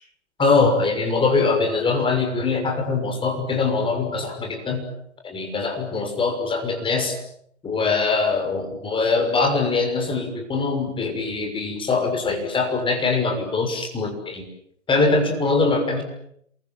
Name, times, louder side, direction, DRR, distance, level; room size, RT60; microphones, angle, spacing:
voice 1, 0.4-4.8 5.2-7.2 7.6-14.5 14.9-16.0, left 4 dB, 15° left, 4 dB, 6.3 m, -22 dB
27.5 x 23.5 x 9.1 m, 0.72 s
figure-of-eight pair, 115°, 38 cm